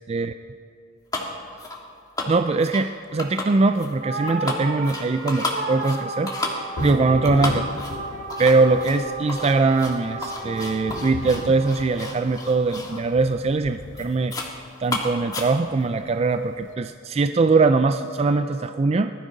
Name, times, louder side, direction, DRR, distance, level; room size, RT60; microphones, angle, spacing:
sound 1, 1.1-1.3 1.6-1.8 2.2-2.9 3.2-3.9 4.3-13.0 13.4-13.7 14.0-14.6 14.8-15.8, left 2 dB, 20° left, 1.6 m, -32 dB
voice 1, 2.3-6.3 6.8-7.6 8.4-14.3 14.8-19.1, right 3 dB, 35° right, 9 dB, 0.3 m, -21 dB
sound 2, 4.0-12.6, right 3 dB, 55° right, 1.7 m, -34 dB
Thunder / Rain, 6.8-16.7, left 4 dB, 70° left, 0.5 m, -38 dB
20.0 x 13.5 x 3.9 m, 2.6 s
head